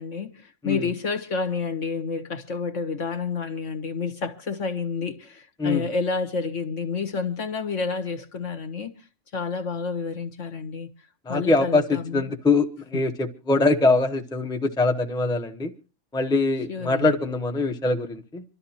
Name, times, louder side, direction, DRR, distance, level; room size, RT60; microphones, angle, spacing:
voice 1, 0.0-8.9 9.3-10.9 11.3-12.2 12.9-13.0 16.7-17.2, left 4 dB, 60° left, 1.7 m, -29 dB
voice 2, 11.3-15.7 16.1-18.4, left 3 dB, 5° left, 0.8 m, -23 dB
26.5 x 12.5 x 2.9 m
omnidirectional pair, 1.5 m